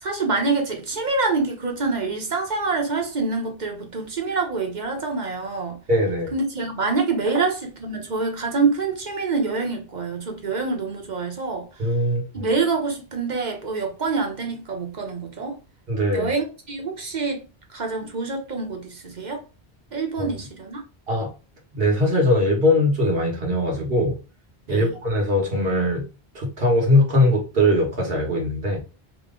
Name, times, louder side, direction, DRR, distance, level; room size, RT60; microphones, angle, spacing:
voice 1, 0.0-5.8 6.3-11.9 12.3-15.6 16.1-17.5 17.7-19.4 19.9-20.8 24.7-25.0, right 4 dB, 45° right, 1.1 m, -26 dB
voice 2, 5.9-6.3 11.8-12.5 15.9-16.3 20.2-20.3 21.1-21.3 21.7-24.1 24.7-26.1 26.3-28.8, left 1 dB, 65° right, 1.5 m, -21 dB
3.1 x 2.9 x 3.7 m
omnidirectional pair, 1.0 m